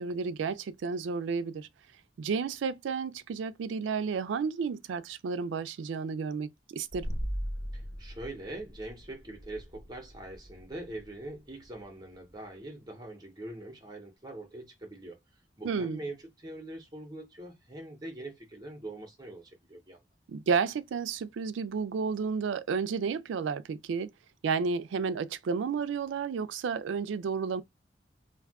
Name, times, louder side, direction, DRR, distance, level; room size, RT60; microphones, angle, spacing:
voice 1, 0.0-1.7 2.2-7.1 15.6-16.0 20.3-24.1 24.4-27.6, right 5 dB, 85° right, 0.3 m, -32 dB
sound 1, 6.9-12.5, equal, 35° left, 1.0 m, -40 dB
voice 2, 7.7-20.0, right 1 dB, 20° right, 0.7 m, -43 dB
2.6 x 2.3 x 3.4 m
head